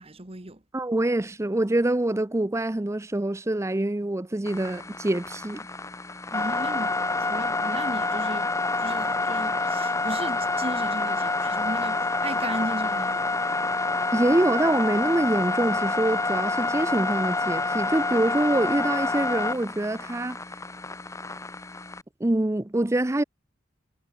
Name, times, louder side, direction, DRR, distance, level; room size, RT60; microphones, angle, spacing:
voice 1, 0.0-0.6 6.3-8.5 8.8-13.4, right 1 dB, 30° right, 1.7 m, -36 dB
voice 2, 0.7-5.7 14.1-20.4 22.2-23.2, right 1 dB, 15° right, 0.6 m, -25 dB
sound 1, 4.4-22.0, left 3 dB, 15° left, 1.0 m, -28 dB
head